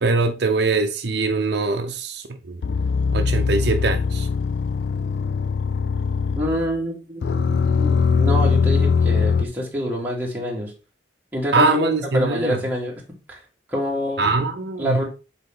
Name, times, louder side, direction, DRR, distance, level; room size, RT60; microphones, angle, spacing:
voice 1, 0.0-2.6 3.1-4.3 11.5-12.6 14.2-15.0, right 3 dB, 65° right, 0.7 m, -22 dB
sound 1, 2.6-6.8 7.2-9.4, left 5 dB, 70° left, 0.4 m, -21 dB
voice 2, 6.4-10.7 11.3-12.9 13.3-13.4 13.7-14.3 14.8-15.1, equal, 10° right, 1.9 m, -26 dB
8.0 x 4.3 x 3.8 m
head